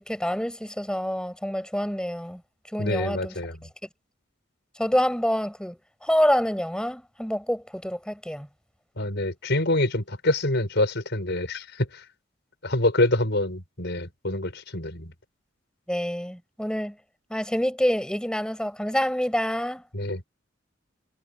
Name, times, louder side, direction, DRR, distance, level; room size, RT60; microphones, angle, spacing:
voice 1, 0.0-2.4 2.7-3.4 4.8-8.5 15.9-17.0 17.3-19.8, equal, 5° left, 7.2 m, -27 dB
voice 2, 2.8-3.6 9.0-11.9 12.6-15.1 19.9-20.2, left 2 dB, 60° left, 6.2 m, -26 dB
head